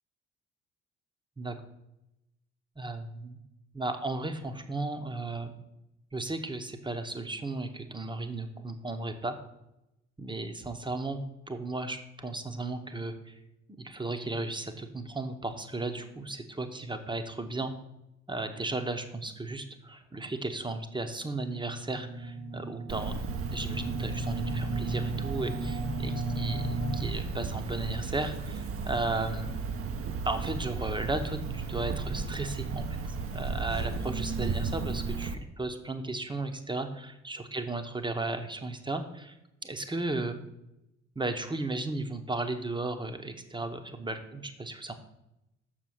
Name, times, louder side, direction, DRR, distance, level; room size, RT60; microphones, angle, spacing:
voice 1, 2.8-3.4 3.7-5.5 6.1-9.3 10.2-11.2 11.5-13.3 13.7-17.7 18.3-23.1 23.5-29.5 30.2-33.0 33.3-39.3 39.6-40.4 41.1-44.9, right 2 dB, 10° right, 7 dB, 1.0 m, -35 dB
sound 1, 21.4-27.0, right 2 dB, 80° right, 1.9 m, -35 dB
Cricket, 22.9-35.3, right 4 dB, 35° right, 0.8 m, -34 dB
6.7 x 6.5 x 5.9 m, 0.88 s
figure-of-eight pair, 45°, 38 cm